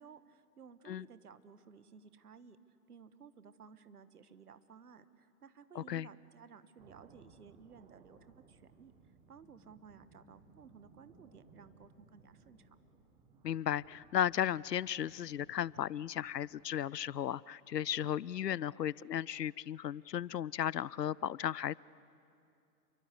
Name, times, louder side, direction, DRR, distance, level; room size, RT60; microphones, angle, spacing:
voice 1, 0.0-2.6 2.9-8.9 9.3-12.8, right 6 dB, 65° right, 13 dB, 1.3 m, -57 dB
voice 2, 5.8-6.1 13.4-21.8, left 10 dB, 75° left, 24 dB, 0.6 m, -35 dB
sound 1, 6.8-17.2, right 4 dB, 10° right, 1.5 m, -63 dB
28.5 x 23.5 x 8.2 m, 2.5 s
figure-of-eight pair, 130°, 49 cm